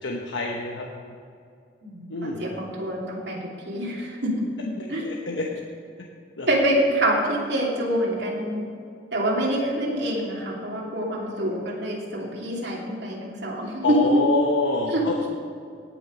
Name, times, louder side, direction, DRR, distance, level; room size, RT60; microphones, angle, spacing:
voice 1, 0.0-0.9 2.1-2.4 4.8-5.5 6.4-6.5 13.8-15.3, left 2 dB, 85° left, -1 dB, 1.0 m, -26 dB
voice 2, 1.8-3.4 3.6-4.3 4.9-5.0 6.5-8.6 9.1-14.2 14.9-15.0, right 1 dB, 65° right, -3 dB, 2.8 m, -25 dB
17.5 x 6.1 x 5.2 m, 2.4 s
head